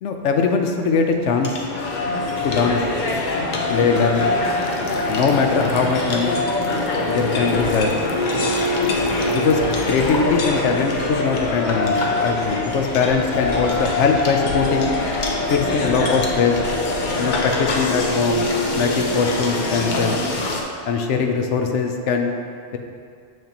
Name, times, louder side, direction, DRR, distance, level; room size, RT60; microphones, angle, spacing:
voice 1, 0.0-1.6 2.4-2.8 3.7-4.3 5.1-6.4 7.1-7.9 9.3-9.6 9.9-14.9 15.5-16.6 17.2-18.4 18.7-20.2 20.9-22.3, left 5 dB, 85° left, 4 dB, 0.9 m, -21 dB
sound 1, 1.2-20.6, left 2 dB, 50° left, 0.7 m, -23 dB
6.7 x 6.3 x 2.9 m, 2.3 s
omnidirectional pair, 1.2 m